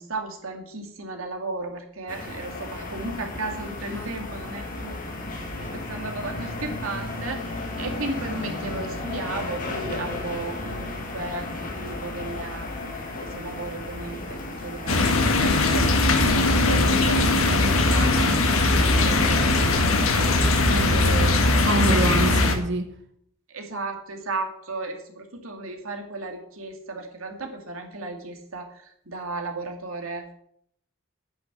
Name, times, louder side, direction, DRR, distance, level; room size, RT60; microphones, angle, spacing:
voice 1, 0.0-5.0 5.4-18.4 18.8-20.4 20.8-21.4 23.5-30.3, right 3 dB, 85° right, 2.4 m, -35 dB
sound 1, 2.1-20.5, left 2 dB, 40° left, 2.5 m, -35 dB
sound 2, 14.9-22.6, left 2 dB, 85° left, 1.8 m, -20 dB
voice 2, 20.6-21.4 21.6-23.0, right 2 dB, 60° right, 1.1 m, -27 dB
10.0 x 6.3 x 8.7 m
head